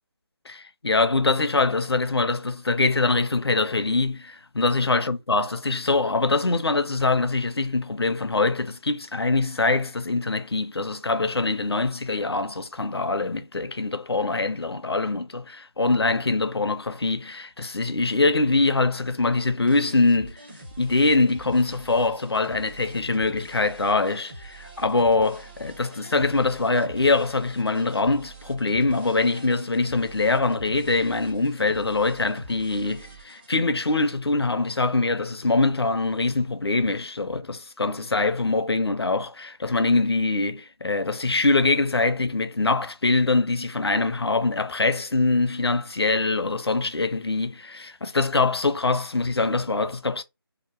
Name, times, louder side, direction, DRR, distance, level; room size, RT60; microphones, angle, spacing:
voice 1, 0.5-20.4 20.8-50.2, left 3 dB, 80° left, 0.5 m, -23 dB
sound 1, 19.7-33.5, right 2 dB, 25° right, 0.6 m, -44 dB
2.8 x 2.1 x 2.5 m
figure-of-eight pair, 155°, 13 cm